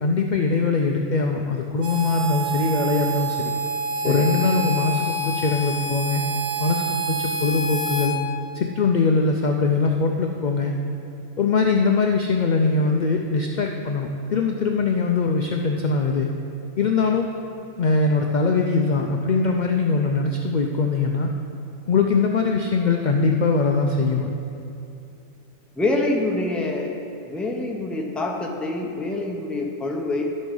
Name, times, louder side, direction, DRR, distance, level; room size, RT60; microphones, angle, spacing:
voice 1, 0.0-3.5 4.0-6.2 6.6-8.2 8.5-10.7 11.4-16.3 16.8-17.3 17.8-21.3 21.9-24.3, left 4 dB, 60° left, 3 dB, 0.4 m, -22 dB
Harmonica, 1.8-8.1, right 2 dB, 75° right, 1.5 m, -27 dB
voice 2, 25.8-26.9 27.2-30.2, left 2 dB, ahead, 0 dB, 0.6 m, -26 dB
12.0 x 5.4 x 5.4 m, 2.7 s
omnidirectional pair, 1.4 m